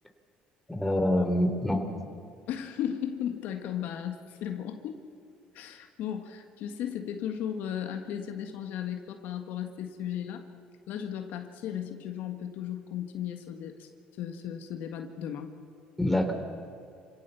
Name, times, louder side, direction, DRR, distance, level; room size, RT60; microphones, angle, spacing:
voice 1, 0.7-1.8 16.0-16.3, left 1 dB, 5° left, 4 dB, 3.6 m, -25 dB
voice 2, 2.5-5.0 5.5-10.4 10.9-13.9 14.2-15.5, left 9 dB, 70° left, 6 dB, 1.7 m, -35 dB
27.5 x 17.5 x 7.1 m, 2.3 s
supercardioid pair, 80°, 3 cm